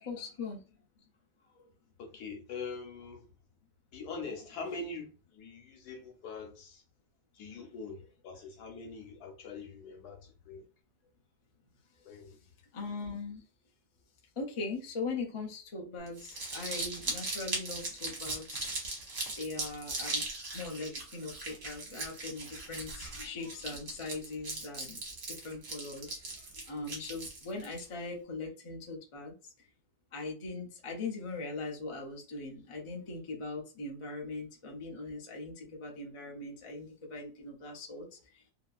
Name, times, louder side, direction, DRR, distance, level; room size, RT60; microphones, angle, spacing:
voice 1, 0.0-0.6 7.6-7.7 12.7-13.4 14.4-18.8 19.4-20.2 20.5-25.0 25.3-29.3 30.1-38.5, left 3 dB, 45° left, 0.4 m, -40 dB
voice 2, 2.0-3.3 3.9-6.8 7.3-10.6 12.0-12.4, left 4 dB, 80° left, 1.3 m, -43 dB
Crumpling crinkling, 16.1-27.8, right 2 dB, 45° right, 1.1 m, -39 dB
2.8 x 2.7 x 2.4 m
omnidirectional pair, 1.7 m